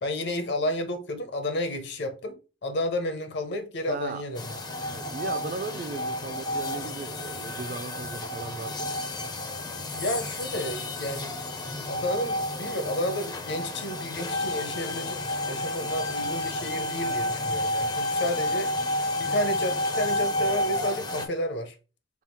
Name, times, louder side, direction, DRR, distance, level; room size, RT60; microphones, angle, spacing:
voice 1, 0.0-4.5 9.8-11.3 11.9-18.7 19.2-21.8, left 1 dB, 60° left, 0.7 m, -31 dB
voice 2, 3.9-4.2 4.6-8.9, right 4 dB, 45° right, 0.4 m, -37 dB
sound 1, 4.4-21.3, left 1 dB, 20° left, 0.4 m, -30 dB
3.5 x 2.4 x 4.4 m
head